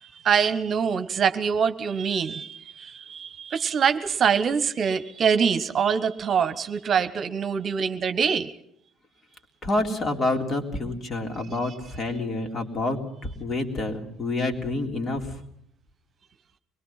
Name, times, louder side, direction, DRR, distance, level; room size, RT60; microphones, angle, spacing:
voice 1, 0.0-8.5, right 7 dB, 45° right, 11 dB, 1.2 m, -24 dB
voice 2, 9.6-15.4, left 2 dB, 40° left, 2 dB, 3.8 m, -28 dB
24.0 x 22.0 x 5.8 m, 0.71 s
figure-of-eight pair, 55°, 0 cm